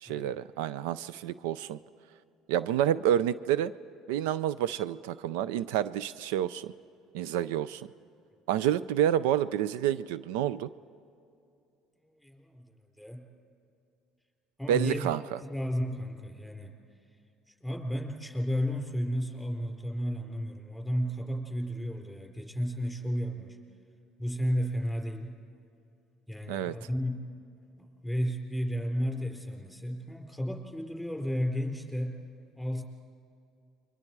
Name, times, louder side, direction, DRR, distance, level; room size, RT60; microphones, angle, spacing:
voice 1, 0.0-1.8 2.5-3.7 4.1-6.7 7.1-7.9 8.5-10.7 14.7-15.2 26.5-26.7, right 11 dB, 90° right, 17 dB, 0.4 m, -28 dB
voice 2, 12.0-13.2 14.6-15.1 15.4-16.7 17.5-23.6 24.2-25.3 26.3-27.3 27.8-32.2 32.5-32.8, equal, ahead, 1 dB, 4.3 m, -33 dB
29.0 x 23.0 x 4.7 m, 2.6 s
supercardioid pair, 95°, 0 cm